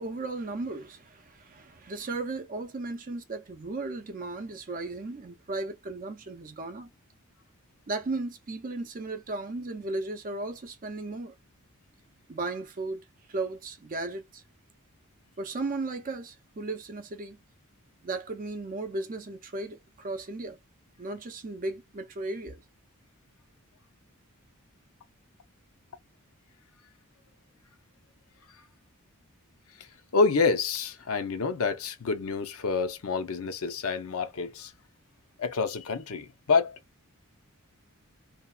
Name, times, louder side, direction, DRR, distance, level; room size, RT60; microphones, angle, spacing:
voice 1, 0.0-6.9 7.9-11.3 12.3-13.0 13.3-14.4 15.4-17.4 18.0-20.6 21.0-22.6, right 2 dB, 40° right, 0.5 m, -35 dB
voice 2, 30.1-34.7 35.4-36.8, left 4 dB, 70° left, 0.6 m, -27 dB
2.8 x 2.3 x 2.2 m
head